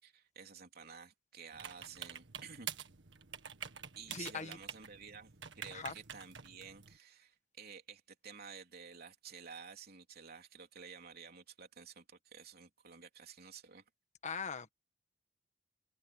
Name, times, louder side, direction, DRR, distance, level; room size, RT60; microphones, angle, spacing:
voice 1, 0.0-2.7 3.9-13.8, right 6 dB, 55° right, 3.5 m, -52 dB
sound 1, 1.5-7.0, right 8 dB, 80° right, 1.8 m, -48 dB
voice 2, 4.1-4.6 5.7-5.9 14.2-14.7, left 5 dB, 40° left, 1.5 m, -40 dB
head